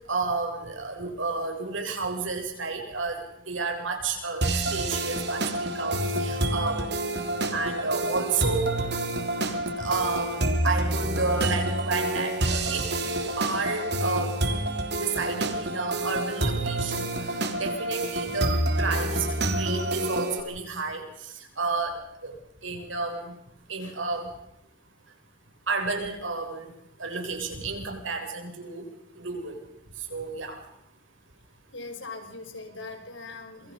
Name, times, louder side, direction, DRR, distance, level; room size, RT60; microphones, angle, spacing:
voice 1, 0.1-4.4 4.7-7.0 7.5-8.7 9.8-14.3 15.0-21.0 21.6-22.0 22.2-22.3 22.6-23.3 23.7-24.3 25.7-26.7 27.0-28.8 29.2-29.6 30.1-30.6, right 4 dB, 85° right, 3 dB, 7.5 m, -31 dB
sound 1, 4.4-20.4, right 1 dB, 55° right, 3.3 m, -28 dB
voice 2, 31.7-33.7, left 3 dB, 75° left, 6 dB, 5.5 m, -41 dB
27.0 x 24.5 x 5.5 m, 0.75 s
head